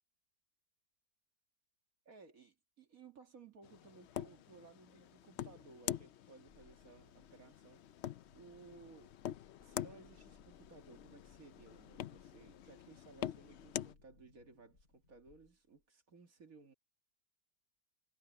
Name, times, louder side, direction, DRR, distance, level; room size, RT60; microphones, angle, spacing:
voice 1, 2.1-7.9 8.3-9.1 9.6-16.7, right 4 dB, 55° right, 2.4 m, -59 dB
sound 1, 3.6-13.9, left 11 dB, 75° left, 0.6 m, -46 dB
sound 2, 6.5-15.8, left 3 dB, 55° left, 4.0 m, -68 dB
omnidirectional pair, 1.7 m